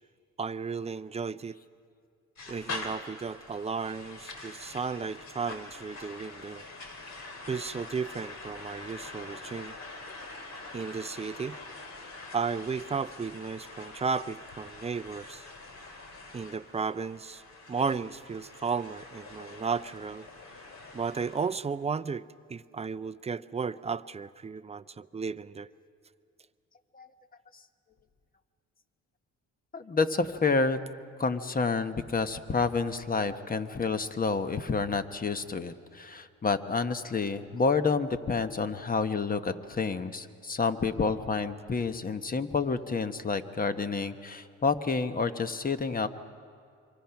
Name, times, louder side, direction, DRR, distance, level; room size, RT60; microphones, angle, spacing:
voice 1, 0.4-1.6 2.5-6.6 7.5-9.8 10.7-11.6 12.3-15.5 16.3-17.4 17.7-20.3 20.9-22.2 22.5-25.7, right 5 dB, 20° right, 13 dB, 0.5 m, -34 dB
sound 1, 2.4-21.5, left 3 dB, 60° left, 3.1 m, -44 dB
voice 2, 29.7-30.8 31.2-46.1, left 4 dB, 30° left, 10 dB, 1.1 m, -29 dB
26.5 x 24.5 x 5.8 m, 2.3 s
cardioid pair, 90°, 30 cm